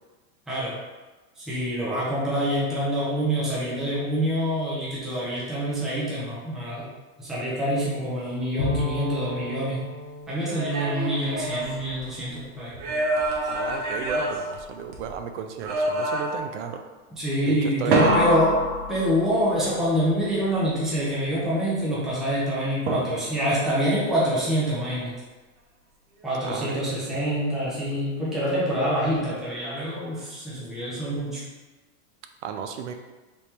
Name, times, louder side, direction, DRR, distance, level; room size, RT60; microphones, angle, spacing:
voice 1, 1.4-6.8 7.2-9.8 10.3-13.0 17.2-18.6 18.9-25.1 26.2-31.4, equal, ahead, -8 dB, 0.4 m, -26 dB
Bowed string instrument, 8.6-12.3, left 2 dB, 30° left, 1.2 m, -33 dB
sound 1, 10.4-12.3 12.7-15.2 15.6-16.6 17.9-19.5 22.9-23.5, right 1 dB, 80° right, 1.1 m, -27 dB
voice 2, 13.5-16.8 17.5-18.2 26.4-27.2 32.4-32.9, right 7 dB, 60° right, 6 dB, 0.5 m, -34 dB
3.6 x 3.1 x 4.2 m, 1.2 s
supercardioid pair, 160°, 41 cm